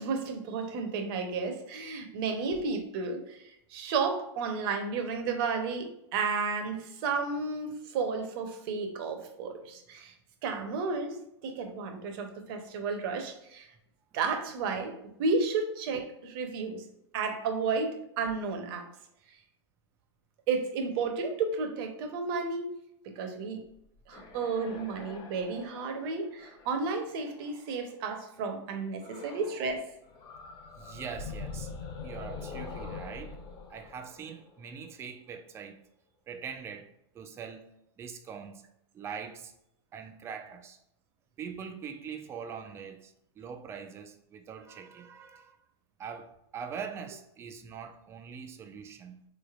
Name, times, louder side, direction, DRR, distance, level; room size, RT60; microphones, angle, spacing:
voice 1, 0.0-3.4 3.7-10.1 10.4-13.7 14.1-16.8 17.1-18.9 20.5-22.7 23.0-23.6 24.1-29.9, right 4 dB, 50° right, 0.8 m, -32 dB
sound 1, 23.7-27.9 29.0-29.8 30.0-34.9, left 4 dB, 30° left, 0.6 m, -44 dB
voice 2, 30.8-31.7 32.0-33.4 33.7-35.8 36.3-36.9 37.1-37.7 38.0-38.6 38.9-39.5 39.9-40.8 41.4-45.6 46.0-49.3, right 6 dB, 15° right, 0.3 m, -42 dB
3.9 x 3.3 x 2.4 m
hypercardioid pair, 120°, 15 cm